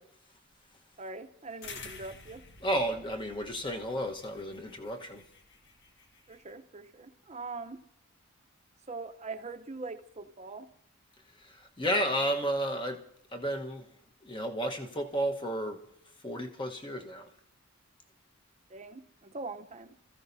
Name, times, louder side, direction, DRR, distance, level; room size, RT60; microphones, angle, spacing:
voice 1, 1.0-2.4 6.3-7.8 8.9-10.7 18.7-19.9, right 3 dB, 30° right, 0.8 m, -42 dB
sound 1, 1.6-6.5, left 4 dB, 55° left, 1.4 m, -50 dB
voice 2, 2.6-5.3 11.4-13.9 14.2-15.8 16.2-17.3, equal, 25° left, 1.2 m, -32 dB
28.5 x 14.5 x 2.7 m
head